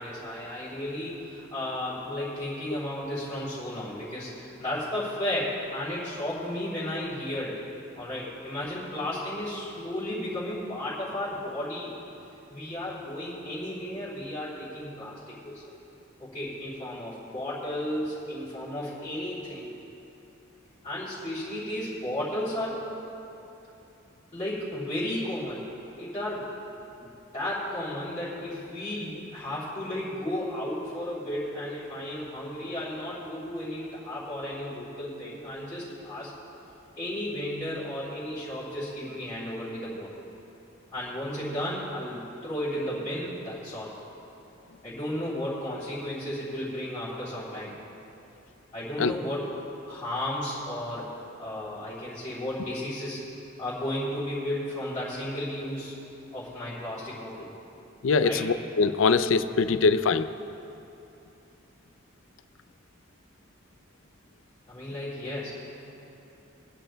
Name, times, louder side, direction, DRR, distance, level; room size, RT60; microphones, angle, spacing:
voice 1, 0.0-7.6 8.0-11.9 12.5-15.6 16.2-19.7 20.8-22.9 24.3-25.7 26.0-26.5 27.0-27.1 27.3-36.3 36.9-40.2 40.9-43.9 44.8-47.7 48.7-49.5 49.8-51.1 51.4-53.2 53.6-55.9 56.3-57.5 58.2-58.5 64.7-65.5, left 1 dB, 20° left, -12 dB, 3.2 m, -33 dB
voice 2, 58.0-60.3, left 4 dB, 70° left, 12 dB, 0.4 m, -23 dB
28.0 x 10.0 x 2.3 m, 2.8 s
head